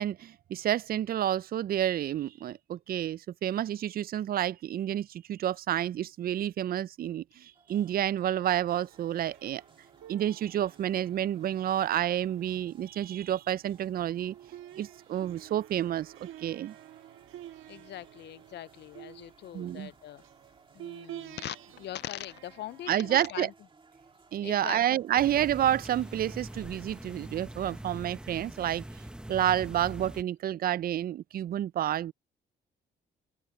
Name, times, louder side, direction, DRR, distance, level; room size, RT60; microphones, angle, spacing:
voice 1, 0.0-9.6 10.1-14.3 14.8-16.7 19.5-19.9 22.9-23.5 24.3-28.8 29.3-32.1, right 11 dB, 50° right, 0.4 m, -29 dB
sound 1, 7.5-27.5, right 3 dB, 25° right, 1.9 m, -61 dB
sound 2, 8.9-23.3, right 13 dB, 90° right, 1.5 m, -50 dB
voice 2, 17.7-20.2 20.7-23.5 24.4-24.8, left 13 dB, 60° left, 0.4 m, -41 dB
sound 3, 25.2-30.2, right 1 dB, 5° right, 1.0 m, -43 dB
open air
cardioid pair, 90°, 20 cm